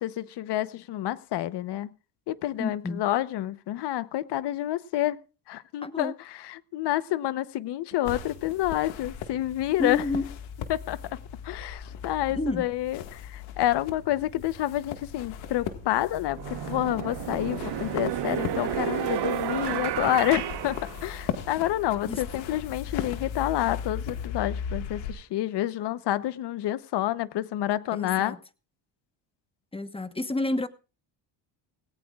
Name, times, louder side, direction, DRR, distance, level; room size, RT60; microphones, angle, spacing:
voice 1, 0.0-1.9 2.3-5.2 5.5-10.0 10.7-11.0 11.4-16.4 16.7-28.4, left 13 dB, 60° left, 1.0 m, -28 dB
voice 2, 2.6-3.0 5.8-6.1 9.8-10.3 12.3-12.6 22.1-22.2 27.9-28.4 29.7-30.7, left 2 dB, 10° left, 1.1 m, -29 dB
sound 1, 8.0-25.1, left 8 dB, 85° left, 1.9 m, -38 dB
sound 2, 15.6-15.7 16.4-21.5, right 12 dB, 65° right, 1.2 m, -31 dB
18.5 x 17.5 x 2.4 m
cardioid pair, 105°, 45 cm